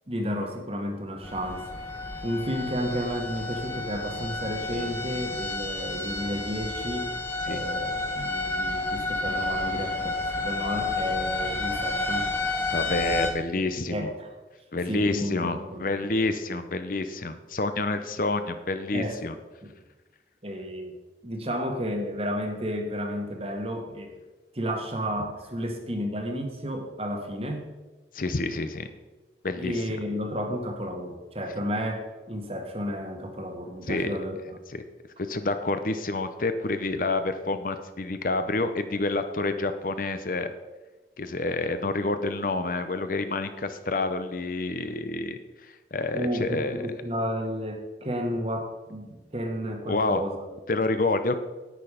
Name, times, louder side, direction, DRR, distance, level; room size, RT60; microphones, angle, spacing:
voice 1, 0.1-1.7 2.2-7.1 7.5-12.3 13.9-14.3 14.9-15.8 18.9-19.2 19.6-19.7 20.4-21.0 21.2-24.1 24.5-27.7 29.6-34.6 46.1-50.4, equal, 35° right, 4 dB, 1.6 m, -32 dB
sound 1, 1.2-13.3, left 2 dB, 15° left, 1.3 m, -31 dB
voice 2, 12.7-14.1 14.7-19.3 28.1-28.9 29.4-29.8 33.9-34.2 34.7-34.8 35.2-40.5 41.2-46.8 49.9-50.2 50.7-51.4, left 2 dB, 50° left, 9 dB, 0.7 m, -28 dB
10.0 x 9.1 x 5.0 m, 1.2 s
head